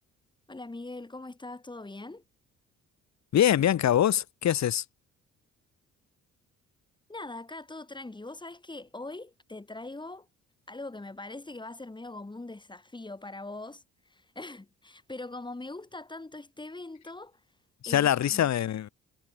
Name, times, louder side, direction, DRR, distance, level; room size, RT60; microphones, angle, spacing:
voice 1, 0.5-2.2 7.1-10.3 10.7-17.4 17.9-18.5, left 2 dB, 15° left, 3.7 m, -42 dB
voice 2, 3.3-4.8 17.8-18.9, left 11 dB, 65° left, 2.2 m, -24 dB
cardioid pair, 90°, 30 cm